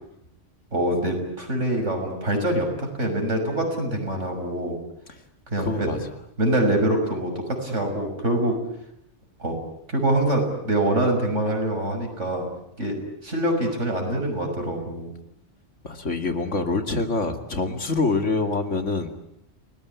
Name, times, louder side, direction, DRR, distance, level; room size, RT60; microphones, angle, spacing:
voice 1, 0.7-4.8 5.5-5.9 6.4-8.6 9.4-9.6 9.9-12.5 12.8-15.1, right 1 dB, 80° right, 3 dB, 6.7 m, -24 dB
voice 2, 5.6-6.0 15.8-19.1, left 3 dB, 85° left, 6 dB, 2.7 m, -25 dB
30.0 x 19.5 x 9.5 m, 0.80 s
omnidirectional pair, 1.2 m